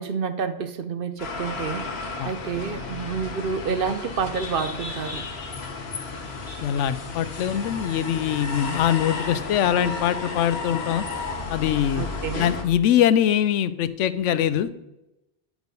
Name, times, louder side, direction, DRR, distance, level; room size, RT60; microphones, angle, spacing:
voice 1, 0.0-2.0 2.2-5.2 12.0-12.5, right 6 dB, 55° right, 10 dB, 0.8 m, -29 dB
sound 1, 1.2-12.6, left 4 dB, 60° left, 1.4 m, -33 dB
voice 2, 6.6-11.1 11.5-12.1 12.3-14.7, left 10 dB, 90° left, 15 dB, 0.9 m, -23 dB
9.4 x 4.8 x 5.3 m, 0.93 s
omnidirectional pair, 1.2 m